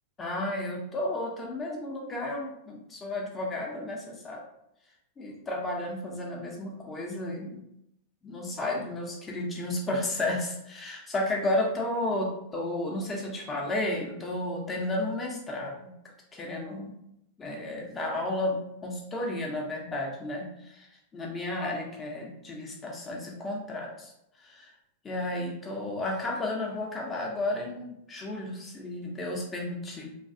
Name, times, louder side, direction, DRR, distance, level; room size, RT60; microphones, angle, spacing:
voice 1, 0.2-4.4 5.2-7.6 8.2-15.9 16.3-17.0 17.4-20.9 21.1-24.1 24.4-24.7 25.0-30.1, left 1 dB, 20° left, -1 dB, 0.9 m, -32 dB
3.1 x 2.3 x 2.7 m, 0.79 s
hypercardioid pair, 110°, 0 cm